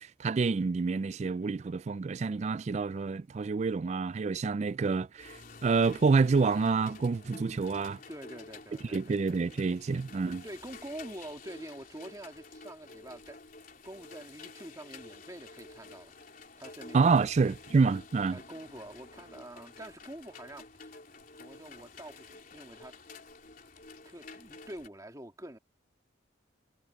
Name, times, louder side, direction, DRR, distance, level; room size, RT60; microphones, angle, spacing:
voice 1, 0.0-8.0 8.9-10.4 16.9-18.4, right 4 dB, 35° right, 0.3 m, -28 dB
sound 1, 5.2-24.9, left 3 dB, 45° left, 3.8 m, -50 dB
voice 2, 8.1-9.4 10.4-13.4 13.8-16.2 16.6-17.3 18.3-20.9 21.4-23.0 24.0-25.6, right 1 dB, 15° right, 2.1 m, -46 dB
head